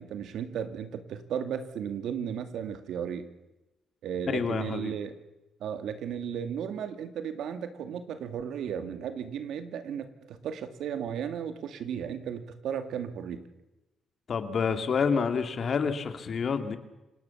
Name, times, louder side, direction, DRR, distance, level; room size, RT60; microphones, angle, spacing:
voice 1, 0.0-3.3 4.0-5.2 5.6-13.4, right 8 dB, 75° right, 9 dB, 2.2 m, -35 dB
voice 2, 4.3-4.9 14.3-16.8, left 6 dB, 50° left, 8 dB, 2.7 m, -28 dB
29.0 x 18.0 x 7.2 m, 0.99 s
cardioid pair, 90°, 0 cm